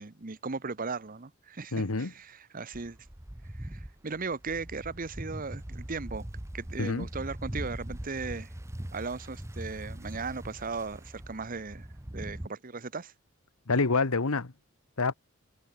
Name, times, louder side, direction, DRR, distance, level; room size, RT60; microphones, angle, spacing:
voice 1, 0.0-3.0 3.5-6.3 6.5-8.5 8.9-11.9 12.1-13.1, right 4 dB, 40° right, 0.9 m, -37 dB
voice 2, 1.7-2.1 6.8-7.1 13.7-14.5 15.0-15.1, left 3 dB, 80° left, 1.2 m, -27 dB
sound 1, 2.7-12.5, right 1 dB, 15° right, 0.9 m, -41 dB
head